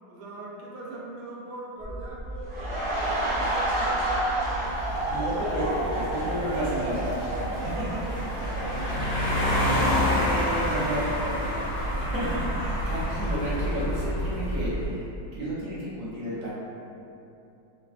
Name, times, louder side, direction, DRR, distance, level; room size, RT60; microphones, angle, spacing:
voice 1, 0.1-2.6 2.9-4.8 5.2-5.7 6.2-9.9 10.5-11.8, right 2 dB, 85° right, -4 dB, 1.1 m, -41 dB
sound 1, 1.8-14.9, right 1 dB, 25° left, 0.5 m, -34 dB
sound 2, 2.4-11.3 11.6-11.8, right 1 dB, 25° right, 1.0 m, -31 dB
sound 3, 4.3-14.6, left 1 dB, 75° left, 0.5 m, -30 dB
voice 2, 5.1-7.0 7.8-7.9 10.3-11.1 12.0-16.5, right 1 dB, 60° right, -9 dB, 1.1 m, -32 dB
3.2 x 2.4 x 2.4 m, 2.7 s
omnidirectional pair, 1.7 m